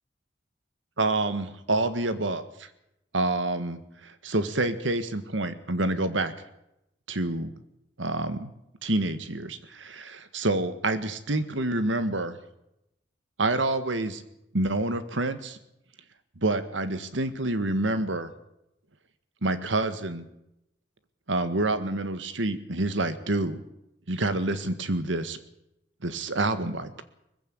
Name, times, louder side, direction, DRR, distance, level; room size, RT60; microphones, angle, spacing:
voice 1, 1.0-2.4 3.1-6.3 7.1-7.5 8.0-8.5 8.8-12.4 13.4-14.2 14.5-15.6 16.4-18.3 19.4-20.3 21.3-23.6 24.1-25.4 26.0-27.0, right 2 dB, 90° right, 11 dB, 1.8 m, -27 dB
20.5 x 15.5 x 8.8 m, 0.84 s
head